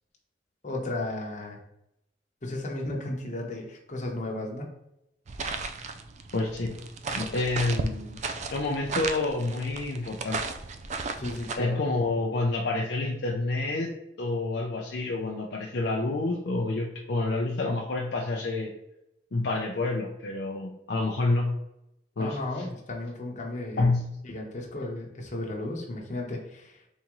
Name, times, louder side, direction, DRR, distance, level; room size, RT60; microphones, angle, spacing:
voice 1, 0.6-1.6 2.4-4.8 11.2-11.8 22.2-23.8 24.2-26.8, left 2 dB, 45° left, -1 dB, 0.9 m, -34 dB
sound 1, 5.3-11.6, right 4 dB, 40° right, 0.4 m, -35 dB
voice 2, 6.3-6.7 7.1-8.2 8.5-10.4 11.6-13.9 14.2-18.7 19.3-21.6 22.2-22.4 23.8-24.2, left 2 dB, 65° left, -1 dB, 0.5 m, -28 dB
4.1 x 3.6 x 3.0 m, 0.84 s
head